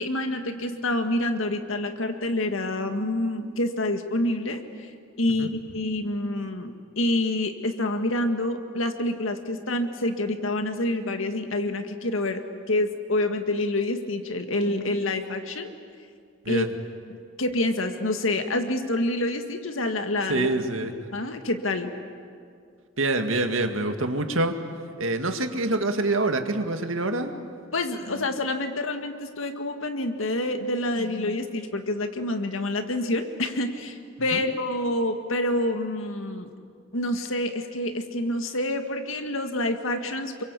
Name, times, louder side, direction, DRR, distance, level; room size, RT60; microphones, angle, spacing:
voice 1, 0.0-4.9 5.2-15.7 16.5-16.7 17.4-20.5 21.1-21.9 27.7-36.5 36.9-40.4, left 1 dB, 90° left, 6 dB, 2.0 m, -27 dB
voice 2, 20.3-20.9 23.0-24.5 25.0-27.3 34.3-34.5, right 2 dB, 85° right, 6 dB, 2.0 m, -26 dB
27.5 x 23.5 x 8.4 m, 2.3 s
head